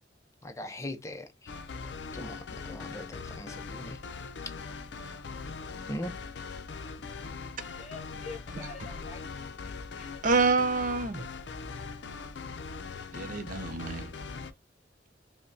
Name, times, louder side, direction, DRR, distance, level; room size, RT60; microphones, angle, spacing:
voice 1, 0.4-1.3 2.1-2.4 2.6-4.0 5.9-6.1, left 1 dB, 15° left, 0.5 m, -39 dB
sound 1, 1.5-14.5, left 4 dB, 70° left, 0.5 m, -41 dB
voice 2, 7.8-10.4, left 4 dB, 35° left, 1.2 m, -47 dB
voice 3, 10.2-11.3 13.1-14.1, right 4 dB, 45° right, 0.6 m, -27 dB
5.2 x 2.1 x 2.6 m
head